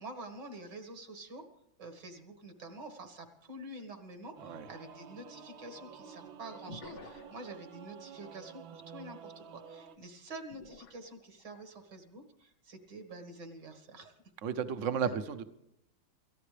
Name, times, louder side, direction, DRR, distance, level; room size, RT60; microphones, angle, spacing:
voice 1, 0.0-1.5 1.8-14.1 15.0-15.1, right 2 dB, 65° right, 6 dB, 2.5 m, -47 dB
sound 1, 3.8-3.9 6.7-7.6 10.5-11.6 12.2-12.4, left 3 dB, 60° left, 1.5 m, -51 dB
Singing / Musical instrument, 4.4-10.0, right 7 dB, 85° right, 1.9 m, -51 dB
voice 2, 14.4-15.5, right 7 dB, 50° right, 11 dB, 1.2 m, -33 dB
28.5 x 15.0 x 3.4 m, 0.80 s
omnidirectional pair, 2.1 m